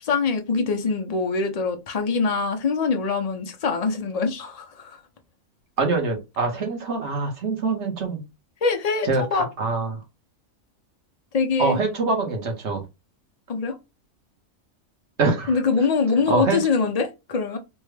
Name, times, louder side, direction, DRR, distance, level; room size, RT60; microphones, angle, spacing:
voice 1, 0.0-5.0 8.6-9.5 11.3-11.8 13.5-13.8 15.5-17.6, left 4 dB, 65° left, 0.3 m, -24 dB
voice 2, 5.8-8.3 9.0-10.0 11.6-12.8 15.2-15.6 16.3-16.6, right 3 dB, 55° right, 1.3 m, -24 dB
3.5 x 2.2 x 3.2 m
omnidirectional pair, 1.4 m